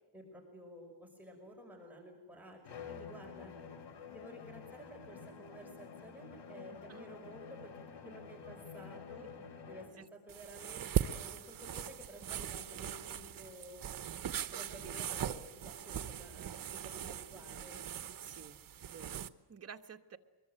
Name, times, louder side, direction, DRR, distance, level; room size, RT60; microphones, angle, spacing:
voice 1, 0.1-3.5 4.1-9.3 9.7-13.9 14.5-17.8, equal, 5° right, 0 dB, 5.6 m, -53 dB
Bowed string instrument, 2.6-10.0, left 6 dB, 75° left, 3.7 m, -49 dB
sound 1, 10.3-19.3, right 9 dB, 50° right, 1.2 m, -40 dB
voice 2, 18.2-18.6 18.9-20.2, right 6 dB, 35° right, 5 dB, 1.7 m, -52 dB
25.0 x 22.5 x 9.1 m, 1.1 s
wide cardioid pair, 140°, 42 cm